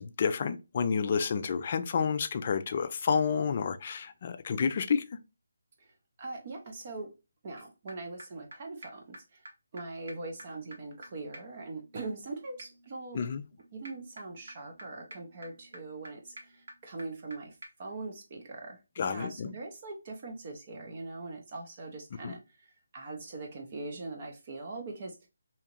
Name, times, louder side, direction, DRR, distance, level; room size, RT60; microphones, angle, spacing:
voice 1, 0.0-5.0 13.1-13.4 19.0-19.5 22.2-22.3, left 6 dB, 35° left, 0.3 m, -30 dB
voice 2, 5.8-7.1 7.4-9.5 9.7-13.3 13.7-25.3, right 3 dB, 35° right, 0.6 m, -42 dB
sound 1, 7.6-7.7 7.9-8.0 8.2-8.3 8.5-8.6 8.8-8.9 9.1-9.2 9.5-9.6 9.8-9.9 10.1-17.4 17.6-17.7, right 1 dB, 65° right, 1.1 m, -51 dB
2.8 x 2.4 x 2.9 m
figure-of-eight pair, 165°, 0 cm